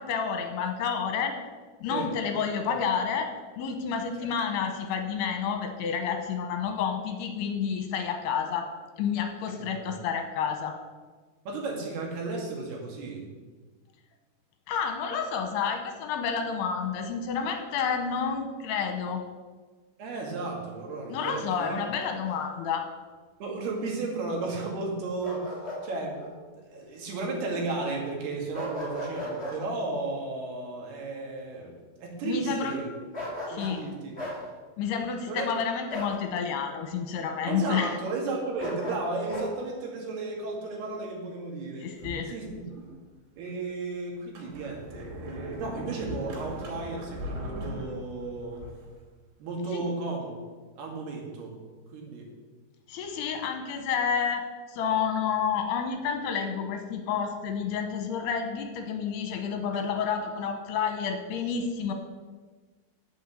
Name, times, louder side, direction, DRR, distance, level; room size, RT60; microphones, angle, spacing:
voice 1, 0.0-1.4 1.8-3.3 3.6-8.7 9.0-10.7 14.7-19.2 21.1-22.9 32.2-32.8 33.5-33.8 34.8-38.0 41.8-42.3 49.7-49.8 52.9-61.9, left 6 dB, 80° left, 5 dB, 3.2 m, -30 dB
voice 2, 9.6-10.0 11.5-13.3 20.0-21.8 23.4-25.5 25.8-26.3 26.7-32.9 33.5-34.2 35.3-35.5 37.5-41.9 42.3-42.9 43.4-48.6 49.4-50.4 50.8-51.6 51.9-52.3 59.7-59.9, right 3 dB, 70° right, -1 dB, 4.0 m, -34 dB
Bark, 21.3-22.4 25.2-25.8 26.2-26.3 28.5-29.6 33.1-33.8 34.2-34.4 35.9-36.2 38.6-39.5, left 1 dB, 5° left, 3.4 m, -36 dB
Sliding door, 42.0-42.9 43.5-43.6 44.2-49.0, equal, 90° right, 4.9 m, -39 dB
10.0 x 8.0 x 7.4 m, 1.4 s
omnidirectional pair, 4.9 m